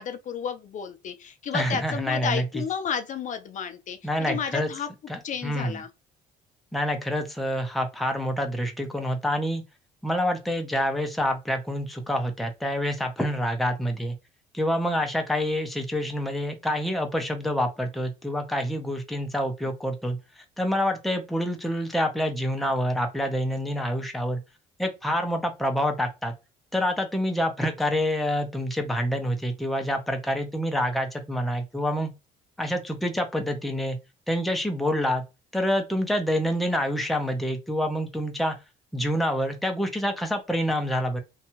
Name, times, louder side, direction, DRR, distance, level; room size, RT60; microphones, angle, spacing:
voice 1, 0.0-4.9 5.2-5.9, left 7 dB, 50° left, 0.4 m, -32 dB
voice 2, 1.5-2.4 4.0-4.7 5.1-5.8 6.7-9.6 10.0-14.1 14.5-20.2 20.6-24.4 24.8-26.3 26.7-32.1 32.6-34.0 34.3-35.2 35.5-38.5 38.9-41.2, equal, ahead, 0.5 m, -27 dB
2.7 x 2.3 x 2.8 m
cardioid pair, 110°, 17 cm